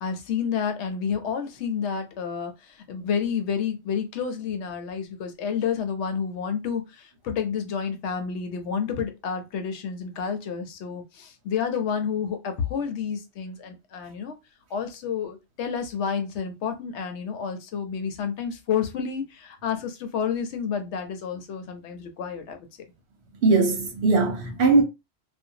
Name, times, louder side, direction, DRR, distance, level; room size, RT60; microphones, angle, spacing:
voice 1, 0.0-14.4 14.7-22.6, left 7 dB, 85° left, 0.9 m, -30 dB
voice 2, 23.4-24.8, right 3 dB, 75° right, 1.1 m, -20 dB
2.6 x 2.2 x 2.7 m
omnidirectional pair, 1.1 m